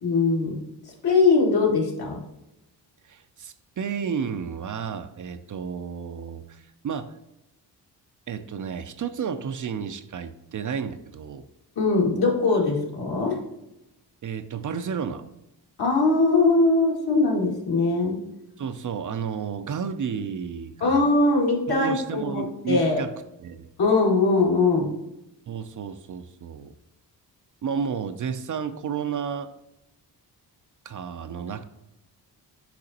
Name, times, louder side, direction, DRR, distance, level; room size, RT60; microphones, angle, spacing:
voice 1, 0.0-0.6 1.0-2.2 11.8-13.4 15.8-18.2 20.8-23.0 23.8-24.9, left 3 dB, 60° left, -2 dB, 2.2 m, -21 dB
voice 2, 3.0-7.1 8.3-11.4 14.2-15.2 18.6-21.0 21.7-23.1 23.4-23.7 25.5-26.7 27.6-29.5 30.8-31.6, right 7 dB, 45° right, 9 dB, 0.5 m, -32 dB
6.6 x 5.0 x 2.9 m, 0.89 s
cardioid pair, 75°, 42 cm